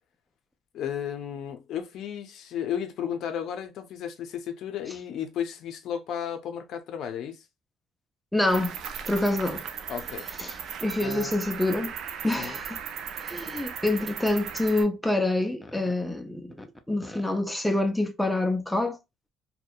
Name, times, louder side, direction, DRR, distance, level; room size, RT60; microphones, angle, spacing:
voice 1, 0.7-7.5 9.9-10.3 11.0-11.3 12.4-12.6, left 9 dB, 65° left, 0.5 m, -34 dB
voice 2, 8.3-8.8 9.1-9.6 10.4-11.9 12.2-12.8 13.2-19.0, left 2 dB, 5° left, 0.4 m, -27 dB
Cricket, 8.5-14.8, right 7 dB, 65° right, 0.4 m, -37 dB
2.7 x 2.1 x 2.2 m
cardioid pair, 115°, 0 cm